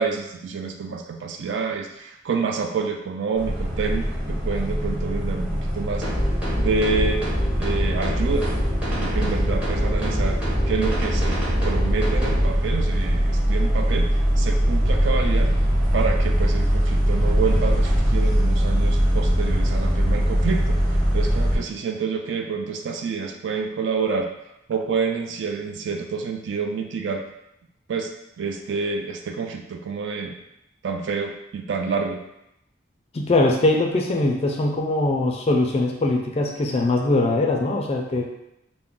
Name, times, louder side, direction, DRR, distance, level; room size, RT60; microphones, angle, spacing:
voice 1, 0.0-6.1 6.6-7.2 7.6-8.5 8.9-10.4 10.7-11.4 11.6-14.1 14.4-15.5 15.9-20.8 21.1-24.3 24.7-27.2 27.9-28.1 28.4-30.4 30.8-32.2, right 5 dB, 65° right, 4 dB, 0.3 m, -28 dB
sound 1, 3.4-21.6, equal, 40° right, 1.0 m, -22 dB
sound 2, 6.0-12.4, equal, 5° right, 0.7 m, -26 dB
voice 2, 33.1-38.2, left 2 dB, 30° left, 0 dB, 0.3 m, -21 dB
2.4 x 2.0 x 3.6 m, 0.83 s
head